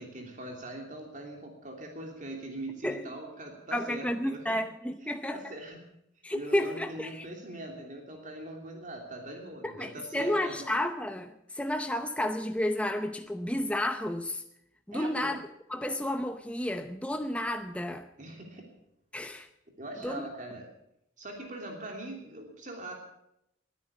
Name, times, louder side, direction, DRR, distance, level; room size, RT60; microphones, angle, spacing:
voice 1, 0.0-4.4 5.0-5.8 6.3-10.7 14.9-15.3 18.2-18.7 19.8-20.7 21.2-22.9, right 1 dB, 40° right, 2 dB, 3.0 m, -42 dB
voice 2, 2.8-3.1 3.7-5.4 6.2-7.3 9.6-14.4 14.9-15.4 15.7-18.1 19.1-19.5 20.0-20.2, left 1 dB, 5° left, 7 dB, 0.7 m, -31 dB
20.0 x 9.8 x 7.1 m, 0.79 s
head